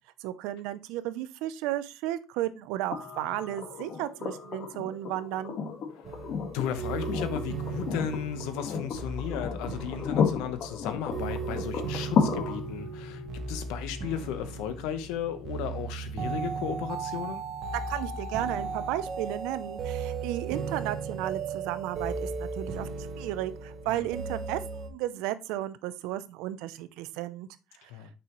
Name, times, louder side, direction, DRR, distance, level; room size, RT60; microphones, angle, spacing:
voice 1, 0.2-5.6 17.9-22.9 23.2-27.5, right 14 dB, 80° right, 0.6 m, -34 dB
sound 1, 2.9-16.9 18.6-18.7, left 6 dB, 55° left, 1.6 m, -34 dB
sound 2, 6.0-24.9, right 5 dB, 50° right, 1.4 m, -36 dB
voice 2, 6.5-13.2 13.5-17.4 23.8-24.1 27.9-28.1, left 9 dB, 80° left, 1.0 m, -35 dB
6.8 x 5.5 x 3.1 m
cardioid pair, 105°, 0 cm